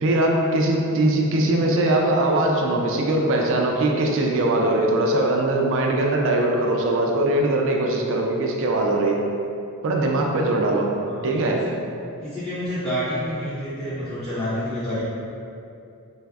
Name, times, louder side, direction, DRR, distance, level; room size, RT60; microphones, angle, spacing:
voice 1, 0.0-9.2 9.8-10.9 11.2-11.6, right 1 dB, 60° right, 0 dB, 0.3 m, -21 dB
voice 2, 11.0-11.6 12.2-15.0, equal, 25° left, -13 dB, 0.5 m, -28 dB
3.3 x 2.0 x 2.3 m, 2.6 s
head